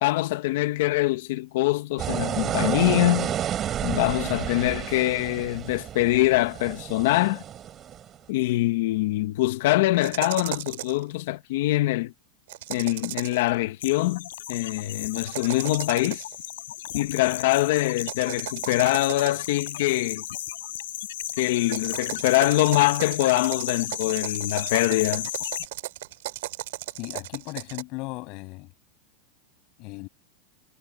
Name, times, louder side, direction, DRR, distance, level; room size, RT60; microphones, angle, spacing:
voice 1, 0.0-3.3 3.8-7.4 8.3-12.1 12.7-16.2 16.9-20.2 21.4-25.3, left 18 dB, 55° left, 1.2 m, -24 dB
sound 1, 2.0-8.1, right 10 dB, 20° right, 5.1 m, -30 dB
sound 2, 10.0-11.0 12.5-13.5 15.1-16.4 18.0-19.6 21.6-27.8, right 17 dB, 65° right, 3.0 m, -36 dB
sound 3, 13.8-25.7, left 13 dB, 80° left, 5.1 m, -35 dB
voice 2, 27.0-28.7 29.8-30.1, left 25 dB, 40° left, 7.3 m, -36 dB
supercardioid pair, 170°, 0 cm